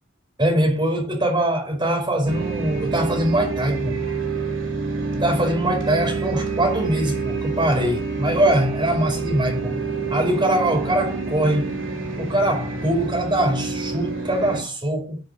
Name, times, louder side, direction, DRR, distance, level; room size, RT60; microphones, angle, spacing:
voice 1, 0.4-4.0 5.1-9.8 10.1-11.8 12.2-15.2, right 1 dB, 25° right, 4.9 m, -22 dB
sound 1, 2.3-14.6, right 4 dB, 70° right, 3.3 m, -28 dB
9.9 x 6.2 x 6.2 m
head